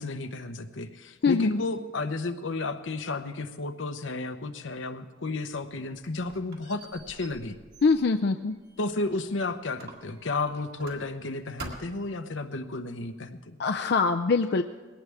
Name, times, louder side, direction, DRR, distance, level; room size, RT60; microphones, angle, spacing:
voice 1, 0.0-7.6 8.8-13.6, left 3 dB, 85° left, 8 dB, 1.0 m, -32 dB
Squeak, 5.5-9.3 9.8-11.3 11.6-12.2, right 2 dB, 55° right, 2.0 m, -46 dB
voice 2, 7.8-8.5 13.6-14.6, left 4 dB, 60° left, 7 dB, 0.4 m, -23 dB
20.5 x 17.5 x 3.5 m, 1.3 s
head